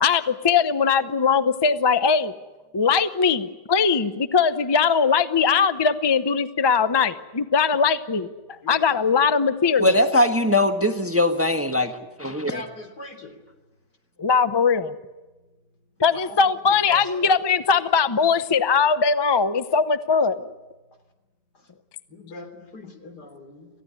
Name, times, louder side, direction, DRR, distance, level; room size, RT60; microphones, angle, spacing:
voice 1, 0.0-2.3 2.7-8.3 8.7-9.9 14.2-14.9 16.0-20.5, left 5 dB, 30° left, 0.5 m, -20 dB
voice 2, 8.6-9.2 12.2-13.4 16.2-16.5 16.9-17.3 22.1-23.7, left 1 dB, 70° left, 4.0 m, -40 dB
voice 3, 9.8-11.9 12.2-12.6, left 1 dB, 10° right, 1.2 m, -20 dB
28.5 x 16.5 x 9.7 m
omnidirectional pair, 1.8 m